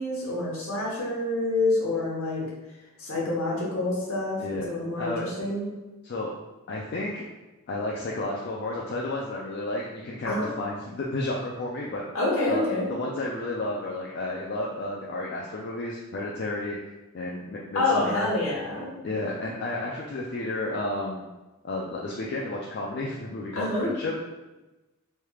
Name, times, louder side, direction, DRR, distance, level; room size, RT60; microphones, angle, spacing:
voice 1, 0.0-2.5 3.0-5.7 10.2-10.5 12.1-12.9 17.7-18.9 23.5-23.9, left 2 dB, 70° left, -4 dB, 1.0 m, -27 dB
voice 2, 5.0-5.3 6.0-6.3 6.7-7.3 7.7-12.0 12.5-16.8 17.1-18.3 19.0-21.3 21.6-24.4, left 2 dB, 50° left, -3 dB, 0.3 m, -32 dB
3.2 x 3.1 x 2.3 m, 1.1 s
head